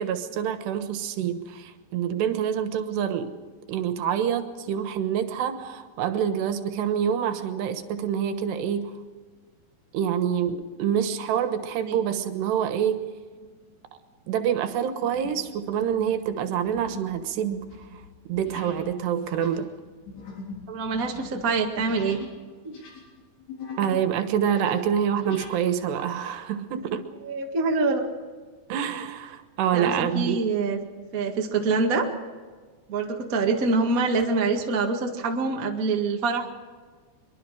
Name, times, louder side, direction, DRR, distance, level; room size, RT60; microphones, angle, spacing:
voice 1, 0.0-3.3 3.7-8.9 9.9-13.0 14.3-17.7 18.3-19.7 23.8-27.1 28.7-30.4, right 8 dB, 80° right, 9 dB, 3.3 m, -26 dB
sound 1, 13.3-13.7 14.2-14.4 15.0-15.5 15.8-22.4 22.6-24.1 24.4-25.6, left 4 dB, 65° left, 5.7 m, -42 dB
voice 2, 20.7-22.2 22.6-22.7 27.2-28.1 29.7-30.8 31.1-32.1 32.9-36.6, right 4 dB, 60° right, 2 dB, 0.9 m, -25 dB
23.5 x 23.0 x 5.0 m, 1.5 s
omnidirectional pair, 4.9 m